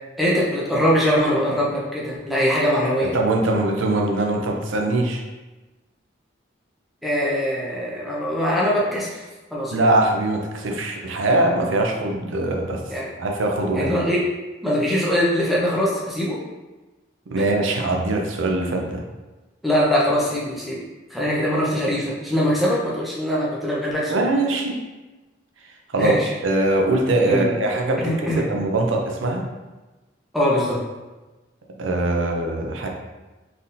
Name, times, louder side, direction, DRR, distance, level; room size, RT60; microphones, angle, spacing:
voice 1, 0.2-3.2 7.0-9.2 9.5-9.7 12.9-13.1 13.8-14.2 14.6-16.4 17.3-17.4 19.6-20.8 21.1-24.3 26.0-26.3 27.3-27.5 28.0-28.4 30.3-30.8, equal, ahead, -6 dB, 0.7 m, -22 dB
voice 2, 3.0-5.2 9.7-12.8 13.2-13.9 17.3-19.0 24.1-24.8 25.9-26.2 26.4-29.4 31.8-32.9, right 2 dB, 85° right, 1 dB, 0.6 m, -22 dB
4.3 x 3.6 x 2.6 m, 1.2 s
head